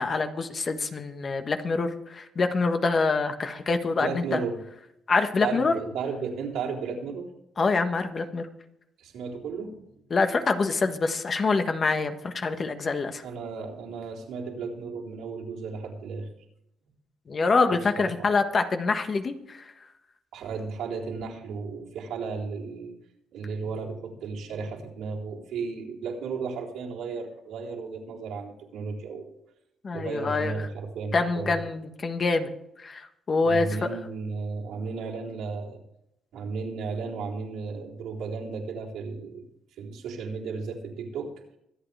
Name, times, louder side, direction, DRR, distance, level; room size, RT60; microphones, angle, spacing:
voice 1, 0.0-4.4 5.1-5.7 7.6-8.5 10.1-13.2 17.3-19.7 29.8-30.6 31.1-32.5 32.8-34.0, left 4 dB, 40° left, 7 dB, 1.5 m, -26 dB
voice 2, 4.0-4.6 5.4-7.3 9.0-10.1 13.2-16.3 17.7-18.3 20.3-22.9 23.3-29.3 29.9-31.6 33.4-35.8 36.3-39.5 39.8-41.3, right 5 dB, 85° right, -4 dB, 3.9 m, -34 dB
24.5 x 8.9 x 3.5 m, 0.81 s
cardioid pair, 90°, 0 cm